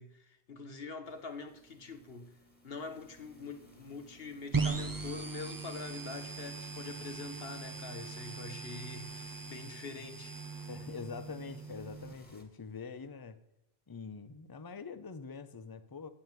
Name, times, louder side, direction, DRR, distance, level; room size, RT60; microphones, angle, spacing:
voice 1, 0.0-2.3 2.6-10.3, left 4 dB, 60° left, 1.4 m, -44 dB
sound 1, 1.0-12.4, left 1 dB, 10° left, 1.9 m, -61 dB
sound 2, 4.5-12.1, right 4 dB, 20° right, 0.7 m, -39 dB
voice 2, 10.7-13.4 13.9-16.1, left 5 dB, 25° left, 0.6 m, -44 dB
9.5 x 8.5 x 9.0 m
omnidirectional pair, 1.2 m